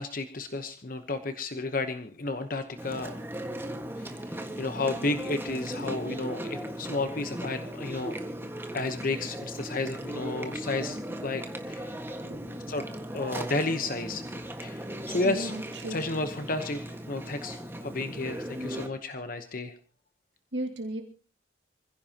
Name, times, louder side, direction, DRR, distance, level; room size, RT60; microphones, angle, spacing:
voice 1, 0.0-3.2 4.0-8.2 8.7-11.9 12.7-12.8 13.1-14.2 14.6-15.5 15.9-16.8 17.1-19.7, left 2 dB, 50° left, 8 dB, 1.0 m, -32 dB
Chewing mastication, 2.8-18.9, right 1 dB, 10° right, 1.6 m, -37 dB
voice 2, 12.2-12.8 15.2-16.1 20.5-21.0, right 1 dB, 65° right, 3 dB, 2.2 m, -36 dB
26.0 x 16.0 x 2.9 m, 0.36 s
head